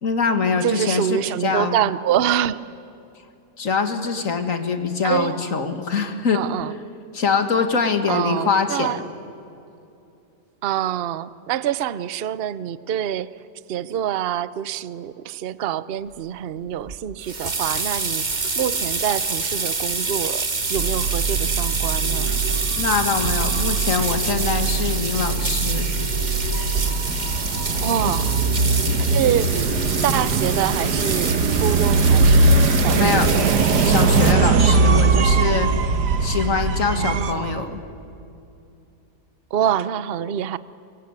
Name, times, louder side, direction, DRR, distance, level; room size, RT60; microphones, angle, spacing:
voice 1, 0.0-1.7 3.6-6.4 7.1-9.0 22.8-25.9 28.0-28.2 32.9-33.3 33.8-35.7 36.2-37.8, left 5 dB, 50° left, 7 dB, 2.1 m, -23 dB
voice 2, 0.6-2.6 5.0-5.4 6.3-6.7 8.1-9.0 10.6-13.3 13.7-22.4 27.8-28.4 29.1-29.5 30.0-33.6 36.9-37.7 39.5-40.6, right 10 dB, 55° right, 16 dB, 0.7 m, -26 dB
sound 1, 16.9-34.3, right 3 dB, 30° right, 1.5 m, -27 dB
sound 2, 20.8-37.3, right 4 dB, 80° right, 1.9 m, -21 dB
sound 3, 22.0-30.6, equal, 35° left, 6.0 m, -35 dB
24.0 x 23.5 x 9.7 m, 2.7 s
omnidirectional pair, 1.8 m